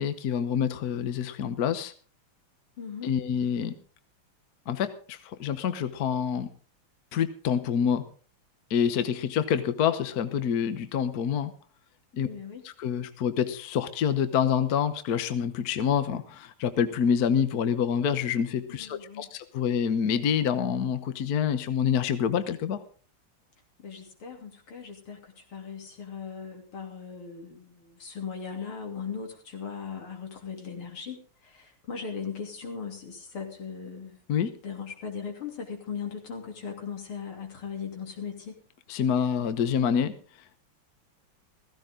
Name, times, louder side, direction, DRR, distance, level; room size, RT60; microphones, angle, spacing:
voice 1, 0.0-1.9 3.0-3.7 4.7-6.5 7.1-8.0 8.7-11.5 12.1-12.3 12.6-22.8 34.3-34.5 38.9-40.2, left 8 dB, 55° left, 11 dB, 1.3 m, -27 dB
voice 2, 2.8-3.1 12.2-12.6 18.7-19.3 23.8-34.2 34.6-38.6, left 6 dB, 85° left, 2 dB, 3.9 m, -38 dB
16.0 x 15.5 x 3.8 m, 0.40 s
omnidirectional pair, 2.3 m